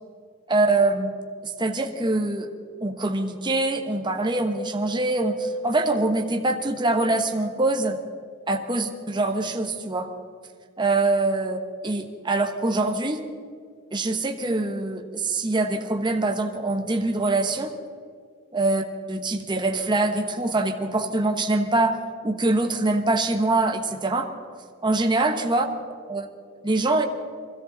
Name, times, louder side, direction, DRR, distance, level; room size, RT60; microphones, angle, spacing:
voice 1, 0.5-2.5 2.8-8.0 8.5-10.1 10.8-11.6 11.8-13.2 13.9-17.7 18.5-18.8 19.1-22.0 22.2-24.3 24.8-25.6 26.1-26.3 26.6-27.1, right 2 dB, 25° right, 4 dB, 1.2 m, -24 dB
24.0 x 13.5 x 4.0 m, 2.2 s
head